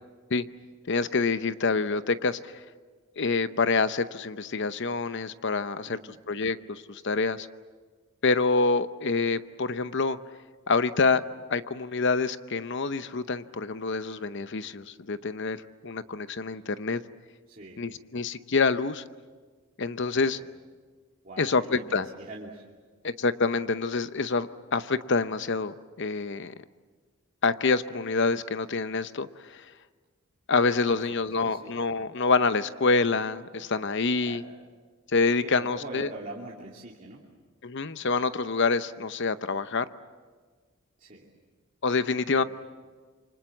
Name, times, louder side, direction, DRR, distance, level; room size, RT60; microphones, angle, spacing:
voice 1, 0.9-2.6 3.2-6.0 6.3-7.5 8.2-10.2 10.7-11.2 11.5-15.6 15.8-17.0 17.8-19.0 19.8-20.4 21.4-22.1 23.0-26.5 27.4-29.7 30.5-34.4 35.1-36.1 37.6-39.9 41.8-42.4, left 4 dB, 55° left, 13 dB, 0.8 m, -26 dB
voice 2, 5.9-6.2 17.5-17.8 20.1-20.4 21.2-22.6 30.9-31.7 34.2-34.5 35.4-37.2 41.0-41.3 42.3-42.4, right 2 dB, 40° right, -4 dB, 2.7 m, -43 dB
28.0 x 25.0 x 7.3 m, 1.4 s
head